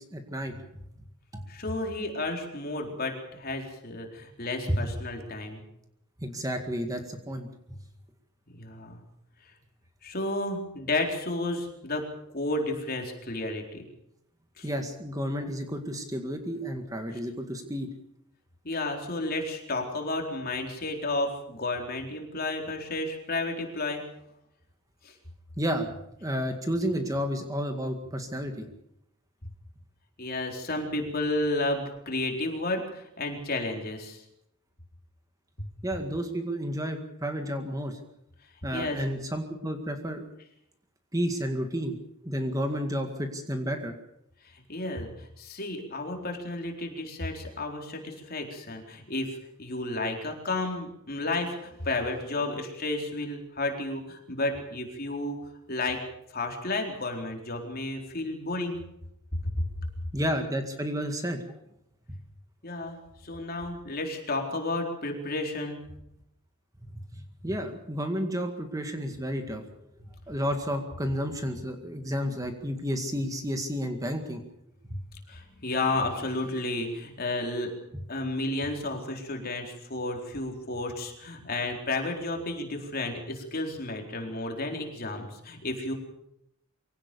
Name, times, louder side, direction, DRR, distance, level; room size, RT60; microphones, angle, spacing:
voice 1, 0.1-0.6 1.3-1.4 4.7-4.8 6.2-7.5 14.6-17.9 25.6-25.9 26.2-28.7 35.8-38.0 38.6-40.2 41.1-42.0 42.2-43.9 60.1-61.4 67.1-69.6 70.3-74.4 74.9-75.0, equal, 15° right, 5 dB, 2.0 m, -31 dB
voice 2, 1.5-5.6 8.5-9.0 10.0-13.9 14.6-14.7 18.6-24.1 25.0-25.1 30.2-34.2 35.6-35.7 38.7-39.1 44.4-55.4 55.7-56.0 56.3-58.8 59.4-59.5 62.6-65.9 75.3-77.7 78.1-85.9, left 2 dB, 45° left, 2 dB, 4.2 m, -32 dB
24.0 x 17.5 x 7.0 m, 0.78 s
head